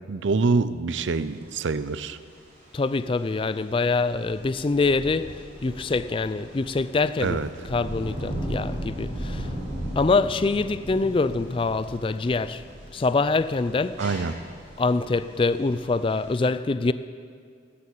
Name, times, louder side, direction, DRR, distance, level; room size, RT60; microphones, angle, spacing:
voice 1, 0.1-2.2 7.2-7.5 14.0-14.4, right 4 dB, 70° right, 0.5 m, -25 dB
sound 1, 1.1-16.3, right 1 dB, 35° right, 3.8 m, -37 dB
voice 2, 2.7-7.4 7.7-9.5 10.0-12.6 12.9-14.0 14.8-16.9, left 3 dB, 25° left, 0.3 m, -25 dB
13.5 x 8.5 x 8.4 m
head